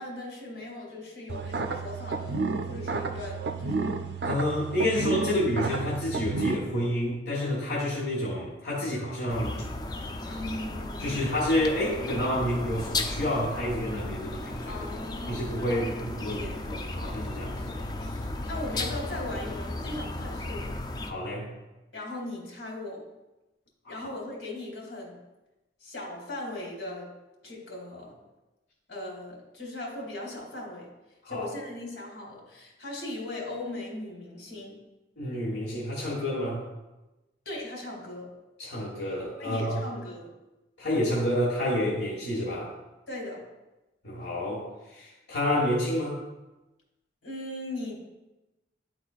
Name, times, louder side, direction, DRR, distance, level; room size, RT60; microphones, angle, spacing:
voice 1, 0.0-3.9 4.9-5.3 10.2-11.2 14.7-16.6 18.5-20.7 21.9-23.0 23.9-25.2 25.8-27.1 27.4-28.2 28.9-30.9 31.3-34.8 37.5-38.3 39.4-40.3 43.1-43.4 47.2-48.0, left 2 dB, 90° left, -2 dB, 2.0 m, -38 dB
sound 1, 1.3-6.5, right 4 dB, 65° right, 0.4 m, -31 dB
voice 2, 4.2-9.6 11.0-14.8 15.3-17.8 21.0-21.5 23.8-24.1 31.2-31.5 35.2-36.7 38.6-39.8 40.8-42.7 44.0-46.2, left 1 dB, 70° left, -6 dB, 1.3 m, -29 dB
sound 2, 9.3-21.1, left 2 dB, 20° left, 0.3 m, -35 dB
10.5 x 3.9 x 2.4 m, 1.0 s
head